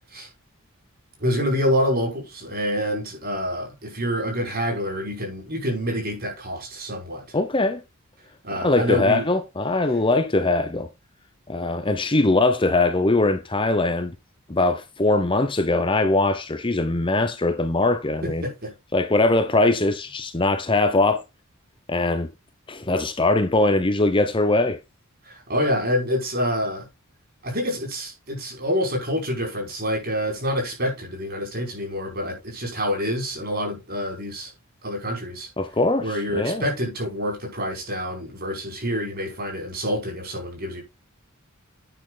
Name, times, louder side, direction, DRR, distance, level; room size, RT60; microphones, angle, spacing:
voice 1, 1.2-7.2 8.4-9.2 18.2-18.7 25.3-26.9 27.4-34.5 34.8-35.5 36.0-40.8, equal, 45° right, 5.4 m, -27 dB
voice 2, 7.3-7.8 8.6-10.9 11.5-14.2 14.5-18.4 18.9-21.2 21.9-22.3 22.7-24.8 35.6-36.6, left 2 dB, 25° left, 0.9 m, -21 dB
9.4 x 6.3 x 4.0 m
head